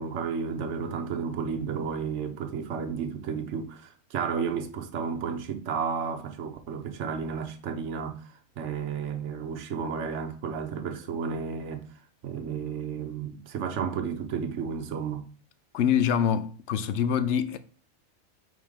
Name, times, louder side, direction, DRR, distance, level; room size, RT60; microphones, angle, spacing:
voice 1, 0.0-11.9 12.2-15.3, right 6 dB, 60° right, 1.1 m, -32 dB
voice 2, 15.7-17.6, left 8 dB, 65° left, 0.8 m, -25 dB
5.4 x 3.9 x 5.1 m
omnidirectional pair, 1.4 m